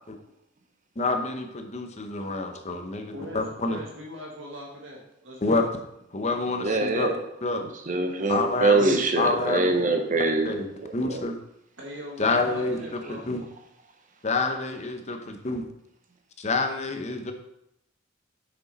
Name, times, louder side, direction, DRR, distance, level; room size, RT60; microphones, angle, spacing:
voice 1, 1.0-3.8 5.4-5.7 6.1-7.1 7.4-7.6 8.3-9.8 10.4-10.7 10.9-11.4 12.2-13.4 14.2-15.6 16.4-17.3, left 3 dB, 35° left, 5 dB, 0.8 m, -28 dB
voice 2, 3.1-5.6 11.8-13.3, equal, 75° right, -1 dB, 1.6 m, -40 dB
voice 3, 6.6-7.2 7.5-11.2, right 3 dB, 40° right, 5 dB, 0.9 m, -24 dB
7.1 x 6.3 x 4.1 m, 0.80 s
head